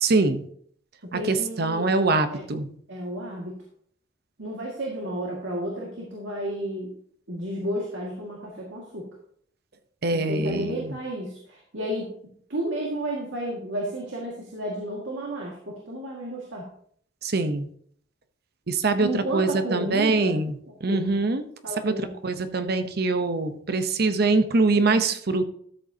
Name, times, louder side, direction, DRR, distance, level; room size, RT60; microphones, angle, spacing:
voice 1, 0.0-0.4 1.1-2.7 10.0-10.9 17.2-17.7 18.7-20.6 20.8-21.4 21.8-25.4, right 3 dB, 55° right, 9 dB, 0.8 m, -23 dB
voice 2, 1.0-1.9 2.3-2.4 2.9-3.6 4.4-6.9 7.3-9.1 10.1-12.1 12.5-16.7 19.0-20.4 20.9-21.1 21.6-22.1, right 1 dB, 90° right, -2 dB, 2.0 m, -32 dB
13.0 x 7.7 x 2.8 m, 0.62 s
head